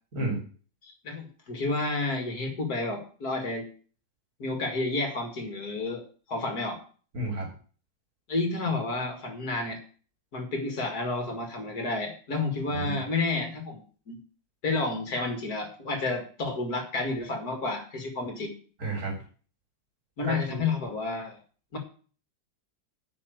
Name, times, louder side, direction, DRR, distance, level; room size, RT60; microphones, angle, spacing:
voice 1, 0.1-0.4 7.1-7.5 12.7-13.0 18.8-19.2 20.2-20.6, right 2 dB, 50° right, 1 dB, 3.8 m, -31 dB
voice 2, 0.8-3.7 4.4-6.0 6.3-6.8 8.3-9.8 10.3-14.2 14.6-18.5 20.2-21.4 21.7-21.8, left 3 dB, 55° left, 5 dB, 2.6 m, -30 dB
9.8 x 6.0 x 7.9 m, 0.41 s
omnidirectional pair, 2.0 m